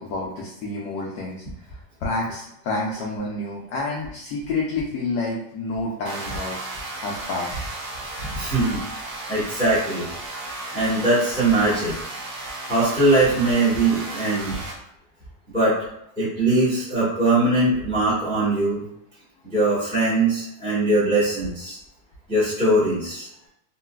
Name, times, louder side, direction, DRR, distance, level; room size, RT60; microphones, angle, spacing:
voice 1, 0.0-6.7 7.0-7.6, left 2 dB, 80° left, -3 dB, 0.9 m, -29 dB
sound 1, 6.1-14.7, right 2 dB, 65° right, 1.0 m, -34 dB
voice 2, 8.3-8.8 9.3-10.1 10.7-12.0 12.7-14.6 15.5-15.7 16.2-18.8 19.5-21.8 22.3-23.3, right 2 dB, 5° left, -9 dB, 0.4 m, -21 dB
3.9 x 2.2 x 2.2 m, 0.76 s
omnidirectional pair, 2.2 m